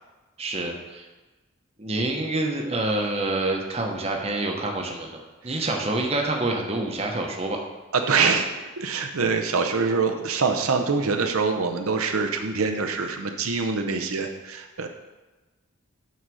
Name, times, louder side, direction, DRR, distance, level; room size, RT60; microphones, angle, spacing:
voice 1, 0.4-1.0 1.8-7.6, right 2 dB, 30° right, 1 dB, 0.9 m, -27 dB
voice 2, 7.9-8.5 8.8-14.9, right 4 dB, 80° right, 4 dB, 0.7 m, -24 dB
9.4 x 4.0 x 6.2 m, 1.2 s
head